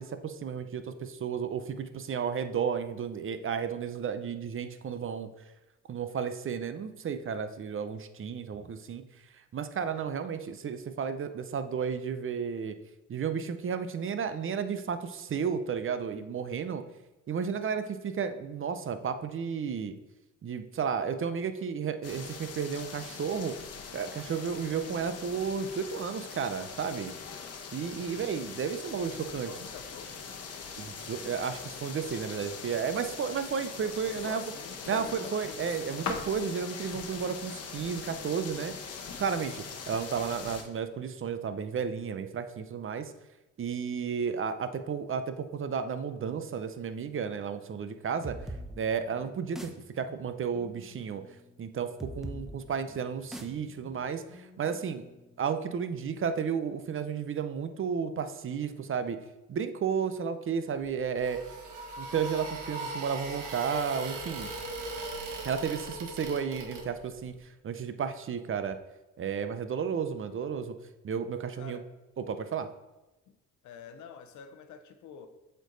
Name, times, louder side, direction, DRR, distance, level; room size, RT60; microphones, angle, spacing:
voice 1, 0.0-5.3 5.9-9.0 9.5-12.8 13.1-16.8 17.3-19.9 20.4-23.6 23.9-27.1 27.7-29.5 30.8-34.4 34.9-38.7 39.2-43.1 43.6-48.4 48.8-51.2 51.6-55.0 55.4-59.2 59.5-61.4 62.0-64.5 65.4-68.8 69.2-70.7 71.0-71.8 72.2-72.7, right 6 dB, 45° right, 0.7 m, -33 dB
sound 1, 22.0-40.6, left 5 dB, 55° left, 1.0 m, -42 dB
voice 2, 28.1-28.4 29.0-30.2 34.0-35.8 71.6-71.9 73.3-73.4 73.6-75.3, left 6 dB, 75° left, 0.8 m, -46 dB
sound 2, 48.2-55.6, right 1 dB, ahead, 0.9 m, -45 dB
sound 3, 60.8-67.2, right 2 dB, 85° right, 1.5 m, -39 dB
7.8 x 4.5 x 3.9 m
cardioid pair, 90°, 30 cm